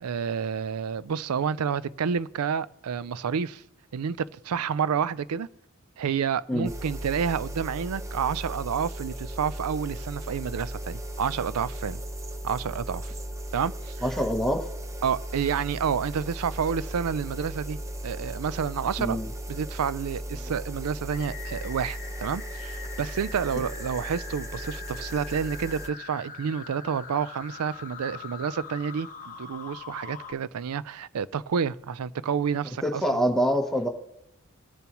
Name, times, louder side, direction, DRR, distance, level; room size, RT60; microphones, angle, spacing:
voice 1, 0.0-3.6 3.9-5.5 6.0-12.0 12.4-13.1 13.5-13.9 15.0-17.8 18.0-19.2 19.5-33.0, right 7 dB, 90° right, 0.4 m, -29 dB
sound 1, 6.6-25.9, right 1 dB, 15° right, 0.5 m, -37 dB
voice 2, 14.0-14.7 19.0-19.3 32.8-33.9, equal, ahead, 0.9 m, -25 dB
sound 2, 21.1-30.3, left 6 dB, 40° left, 0.9 m, -42 dB
20.5 x 7.0 x 3.0 m
head